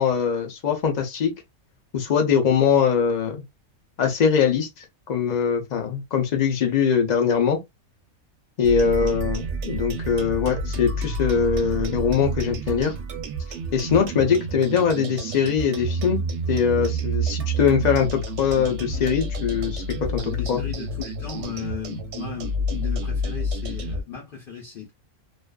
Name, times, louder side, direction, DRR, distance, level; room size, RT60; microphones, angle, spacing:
voice 1, 0.0-1.3 1.9-3.4 4.0-7.6 8.6-12.9 13.7-16.2 16.5-20.6, left 7 dB, 75° left, 0.4 m, -22 dB
sound 1, 8.6-24.0, right 2 dB, 65° right, 0.8 m, -29 dB
voice 2, 20.2-24.9, left 8 dB, 50° left, 0.7 m, -36 dB
2.4 x 2.3 x 2.2 m
omnidirectional pair, 1.5 m